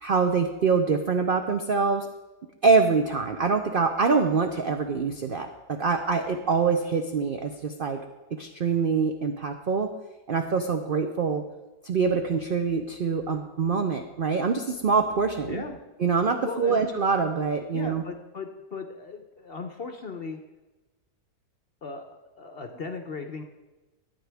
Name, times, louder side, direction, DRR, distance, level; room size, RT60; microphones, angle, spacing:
voice 1, 0.0-2.1 2.6-8.0 8.3-9.9 10.3-11.4 11.8-15.6 16.0-18.0, right 5 dB, 80° right, 6 dB, 0.5 m, -25 dB
voice 2, 15.5-15.8 16.5-16.8 17.7-20.4 21.8-23.4, left 4 dB, 50° left, 5 dB, 0.7 m, -37 dB
14.5 x 9.2 x 3.4 m, 1.1 s
omnidirectional pair, 1.8 m